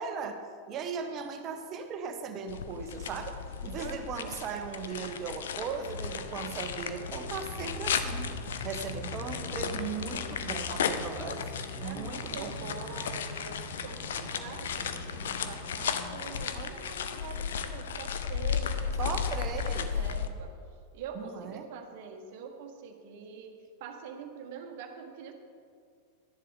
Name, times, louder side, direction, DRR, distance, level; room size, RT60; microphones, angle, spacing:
voice 1, 0.0-3.4 3.6-8.3 8.6-11.5 11.8-12.6 19.0-19.9 21.1-21.7, right 6 dB, 35° right, 6 dB, 1.2 m, -38 dB
sound 1, 2.5-20.3, left 7 dB, 60° left, 0.7 m, -35 dB
voice 2, 3.7-4.4 11.8-20.5 20.9-25.3, right 6 dB, 50° right, 5 dB, 1.4 m, -44 dB
sound 2, 5.8-16.4, left 2 dB, 35° left, 3.0 m, -42 dB
12.0 x 10.5 x 5.2 m, 2.3 s
figure-of-eight pair, 90°, 0 cm